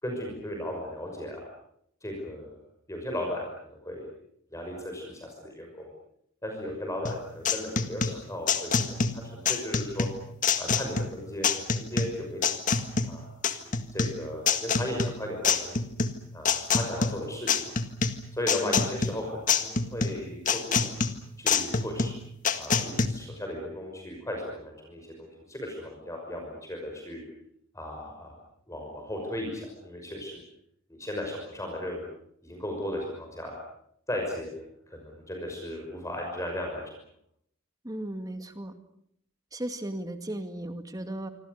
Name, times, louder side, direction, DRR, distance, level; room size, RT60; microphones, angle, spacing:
voice 1, 0.0-1.5 2.0-2.6 2.9-4.1 4.5-5.9 6.4-10.1 10.6-12.5 13.0-13.3 13.6-15.7 16.3-17.8 18.3-20.9 21.4-22.1 22.5-27.2 27.7-28.3 28.7-30.4 30.9-32.1 32.4-33.6 34.1-37.0, left 1 dB, 15° left, 1 dB, 5.9 m, -36 dB
sound 1, 7.1-23.1, left 5 dB, 40° left, 1.7 m, -27 dB
voice 2, 37.8-38.7 39.5-41.3, right 1 dB, 15° right, 7 dB, 2.1 m, -36 dB
27.0 x 26.0 x 6.7 m, 0.70 s
head